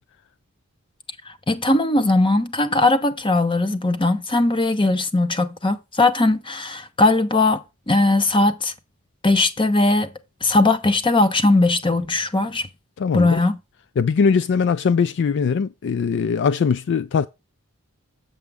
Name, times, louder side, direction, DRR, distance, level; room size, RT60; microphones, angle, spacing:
voice 1, 1.5-8.7 9.2-10.1 10.4-12.7 13.1-13.6, left 2 dB, 20° left, 0.8 m, -19 dB
voice 2, 13.0-13.4 14.0-17.3, left 6 dB, 55° left, 0.3 m, -20 dB
7.4 x 6.8 x 3.5 m
head